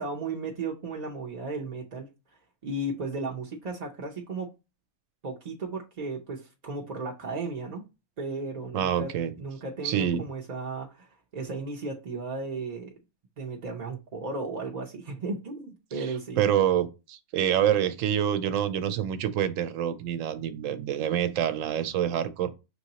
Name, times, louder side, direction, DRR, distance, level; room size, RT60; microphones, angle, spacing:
voice 1, 0.0-2.1 2.6-4.5 5.2-7.8 8.2-12.9 13.4-16.4, right 3 dB, 45° right, 0.6 m, -35 dB
voice 2, 8.7-9.3 9.8-10.2 16.0-16.1 16.4-22.5, right 10 dB, 75° right, 1.0 m, -26 dB
5.8 x 2.9 x 2.8 m
omnidirectional pair, 1.4 m